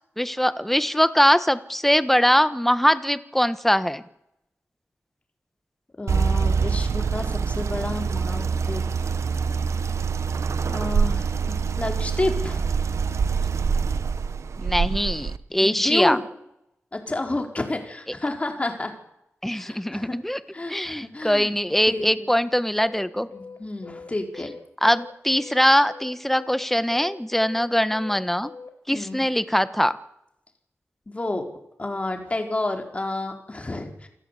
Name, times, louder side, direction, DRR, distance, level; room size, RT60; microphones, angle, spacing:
voice 1, 0.2-4.0 14.6-16.2 19.4-20.4 20.7-23.3 24.8-28.5 28.9-29.9, equal, 5° left, 13 dB, 1.4 m, -22 dB
voice 2, 6.0-8.8 10.7-12.7 15.6-16.2 16.9-18.9 19.4-20.1 20.5-21.5 21.9-22.3 23.2-24.5 28.9-29.2 31.1-31.5 31.8-34.1, left 2 dB, 25° left, 4 dB, 4.6 m, -30 dB
sound 1, 6.1-15.4, right 5 dB, 85° right, 1.1 m, -25 dB
sound 2, 22.8-29.0, left 4 dB, 70° left, 4.3 m, -42 dB
28.0 x 15.0 x 8.4 m, 0.82 s
wide cardioid pair, 100°, 5 cm